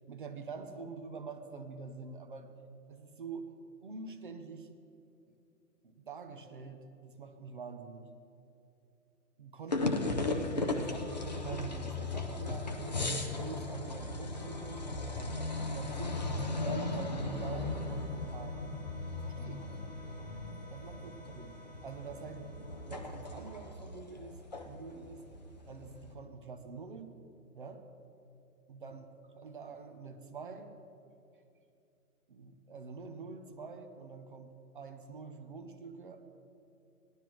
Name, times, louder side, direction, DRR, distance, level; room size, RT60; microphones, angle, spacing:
voice 1, 0.1-2.5 2.9-3.5 3.8-4.7 5.3-5.4 5.8-8.1 9.4-13.0 13.4-14.9 15.1-16.2 16.5-18.8 19.2-19.7 20.7-22.4 22.9-24.4 24.6-25.3 25.7-27.2 27.5-27.9 28.7-29.0 29.3-30.7 32.3-36.2, right 4 dB, 35° right, 7 dB, 0.7 m, -45 dB
sound 1, 9.7-26.1, left 2 dB, 30° left, 0.5 m, -37 dB
sound 2, 14.3-23.8, left 1 dB, 5° left, 1.0 m, -54 dB
18.5 x 12.0 x 3.0 m, 2.6 s
hypercardioid pair, 165°, 47 cm